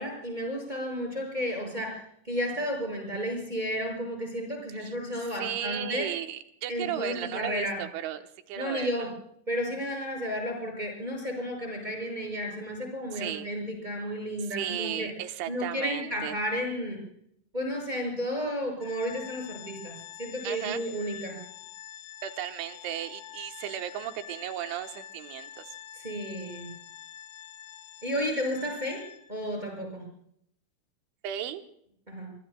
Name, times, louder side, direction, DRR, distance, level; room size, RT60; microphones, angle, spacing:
voice 1, 0.0-2.0 2.3-6.1 6.7-7.8 8.6-9.1 9.5-15.1 15.5-17.0 17.5-21.3 26.0-26.7 28.0-29.0 29.3-30.0 32.1-32.3, equal, 10° right, 0 dB, 6.5 m, -32 dB
voice 2, 5.4-8.2 8.5-9.1 13.1-13.5 14.5-16.3 20.4-20.8 22.2-25.8 31.2-31.6, right 11 dB, 85° right, 6 dB, 3.6 m, -35 dB
Organ, 18.8-29.5, left 11 dB, 70° left, 2.9 m, -46 dB
25.0 x 23.0 x 2.3 m, 0.69 s
omnidirectional pair, 5.4 m